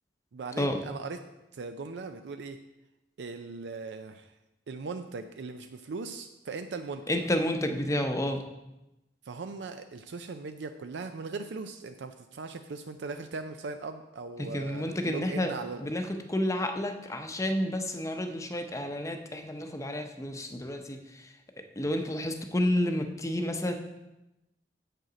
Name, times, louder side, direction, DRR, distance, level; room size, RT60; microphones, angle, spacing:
voice 1, 0.3-1.2 1.5-2.6 3.2-4.3 4.7-7.1 9.2-15.8, right 4 dB, 80° right, 7 dB, 0.4 m, -39 dB
voice 2, 7.1-8.4 14.5-15.5 15.8-21.3 21.8-23.7, left 1 dB, 20° left, 6 dB, 0.7 m, -30 dB
7.7 x 6.7 x 4.9 m, 0.96 s
head